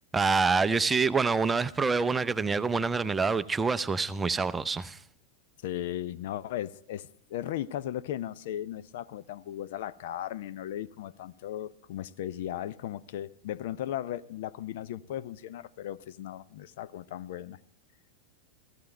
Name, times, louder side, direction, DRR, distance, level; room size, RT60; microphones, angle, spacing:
voice 1, 0.1-5.0, right 4 dB, 15° right, 0.5 m, -26 dB
voice 2, 5.6-17.6, left 12 dB, 55° left, 0.4 m, -36 dB
15.5 x 15.0 x 4.4 m
figure-of-eight pair, 90°, 0 cm